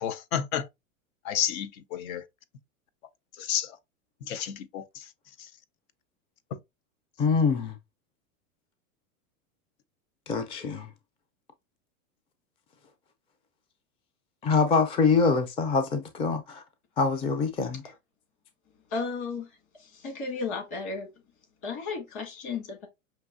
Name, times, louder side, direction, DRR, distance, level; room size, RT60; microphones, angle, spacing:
voice 1, 0.0-0.6 1.3-1.7 1.9-2.2 3.5-3.7 4.3-4.8, left 9 dB, 75° left, 0.8 m, -29 dB
voice 2, 7.2-7.7 10.3-10.9 14.4-16.6 17.0-17.8, left 4 dB, 15° left, 0.4 m, -24 dB
voice 3, 18.9-21.1 21.6-22.9, left 4 dB, 45° left, 2.1 m, -34 dB
5.7 x 2.7 x 2.5 m
hypercardioid pair, 120°, 42 cm